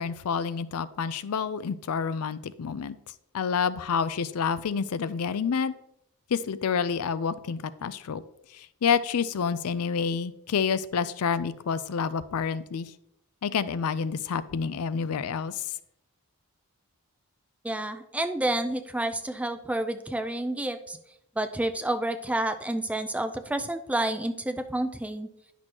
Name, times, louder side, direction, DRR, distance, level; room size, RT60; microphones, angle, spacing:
voice 1, 0.0-3.0 3.3-5.7 6.3-8.2 8.8-12.9 13.4-15.6, left 6 dB, 75° left, 15 dB, 0.4 m, -28 dB
voice 2, 17.6-21.0 21.4-25.3, right 1 dB, 5° right, 10 dB, 0.4 m, -29 dB
10.5 x 6.2 x 2.9 m, 0.80 s
head